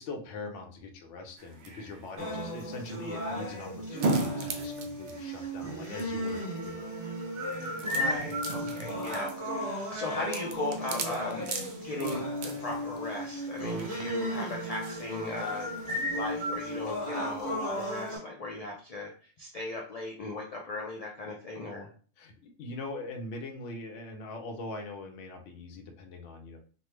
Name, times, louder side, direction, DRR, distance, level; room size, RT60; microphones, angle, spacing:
voice 1, 0.0-6.4 6.6-6.9 22.2-26.6, left 3 dB, 80° left, 4 dB, 1.0 m, -42 dB
sound 1, 1.4-16.0, right 3 dB, 60° right, 0.5 m, -39 dB
sound 2, 2.2-18.2, equal, 15° right, 1.4 m, -35 dB
voice 2, 7.8-11.5 11.8-21.9, left 2 dB, 50° left, -2 dB, 0.4 m, -37 dB
3.2 x 2.2 x 3.1 m, 0.41 s
omnidirectional pair, 1.2 m